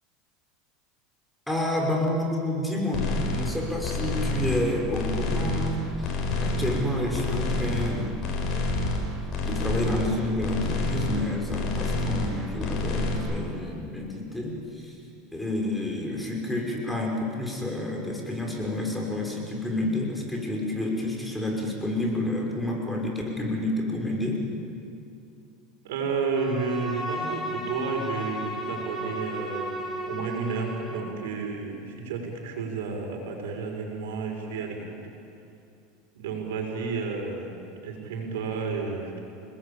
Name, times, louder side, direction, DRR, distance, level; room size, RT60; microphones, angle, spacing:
voice 1, 1.5-8.3 9.4-15.0 15.3-24.4, left 1 dB, 5° left, -1 dB, 5.6 m, -29 dB
sound 1, 2.9-3.5 3.8-4.6 4.9-5.7 6.0-6.8 7.1-7.9 8.2-9.0 9.3-10.1 10.4-11.2 11.5-12.3 12.6-13.2, left 2 dB, 45° left, 7.1 m, -28 dB
voice 2, 25.8-29.7 30.0-34.8 36.1-39.2, right 4 dB, 85° right, 2 dB, 6.3 m, -31 dB
Bowed string instrument, 26.3-31.1, right 1 dB, 15° right, 4.8 m, -34 dB
29.5 x 20.5 x 8.8 m, 2.6 s
supercardioid pair, 120°, 0 cm